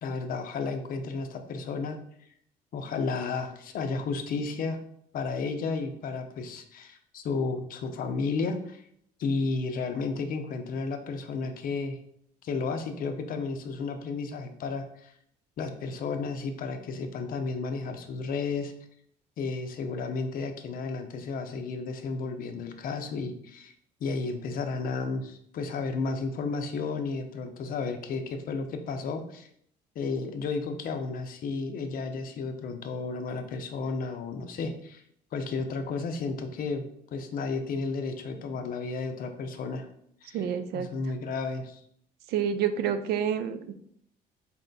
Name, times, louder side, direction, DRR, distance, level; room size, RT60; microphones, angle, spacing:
voice 1, 0.0-2.0 2.7-4.8 5.1-8.8 9.2-12.0 12.4-15.1 15.6-18.7 19.4-23.7 24.0-29.5 30.0-35.0 35.3-39.9 40.2-40.4 40.7-41.8, left 4 dB, 55° left, 6 dB, 0.6 m, -32 dB
voice 2, 40.3-40.9 42.3-43.7, right 8 dB, 70° right, 10 dB, 0.4 m, -28 dB
4.1 x 2.2 x 3.9 m, 0.68 s
cardioid pair, 110°, 17 cm